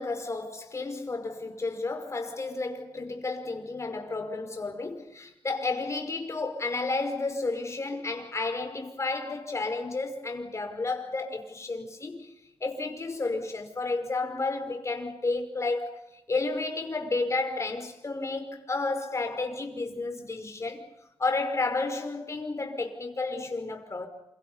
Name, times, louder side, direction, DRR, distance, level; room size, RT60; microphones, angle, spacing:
voice 1, 0.0-12.3 12.6-16.0 16.3-20.9 21.2-24.1, left 3 dB, 30° left, 5.3 m, -31 dB
29.5 x 28.5 x 5.6 m
wide cardioid pair, 120°, 9 cm